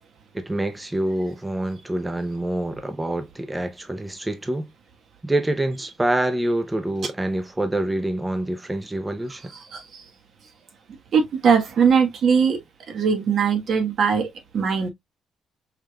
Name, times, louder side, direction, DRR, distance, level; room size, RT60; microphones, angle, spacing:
voice 1, 0.3-4.7 5.2-9.5, right 1 dB, 15° right, 0.7 m, -26 dB
voice 2, 9.7-10.0 11.1-12.6 12.9-14.9, right 6 dB, 60° right, 1.3 m, -20 dB
5.5 x 3.2 x 2.2 m
cardioid pair, 90°, 0 cm